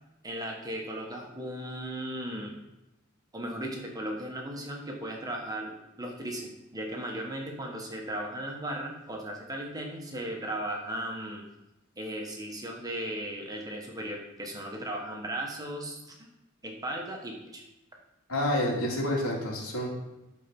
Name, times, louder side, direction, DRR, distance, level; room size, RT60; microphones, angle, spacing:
voice 1, 0.2-2.5 3.3-11.4 12.0-16.3 16.6-17.6, right 1 dB, 15° right, 0 dB, 1.3 m, -36 dB
voice 2, 18.3-19.9, left 1 dB, 85° left, -2 dB, 2.8 m, -28 dB
13.5 x 4.6 x 5.4 m, 0.96 s
head